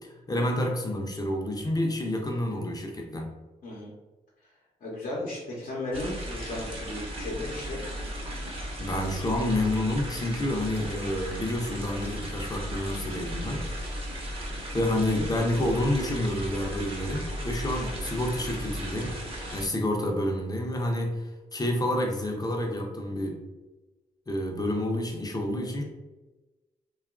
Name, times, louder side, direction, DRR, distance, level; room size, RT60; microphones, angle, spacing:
voice 1, 0.3-3.3 8.8-13.6 14.7-19.1 19.5-23.4 24.3-25.8, left 1 dB, 25° left, 2 dB, 0.7 m, -29 dB
voice 2, 4.8-7.8, left 2 dB, 60° left, -5 dB, 0.8 m, -35 dB
sound 1, 5.9-19.7, equal, 35° right, 0.9 m, -36 dB
2.8 x 2.4 x 2.4 m, 1.1 s
hypercardioid pair, 45°, 16 cm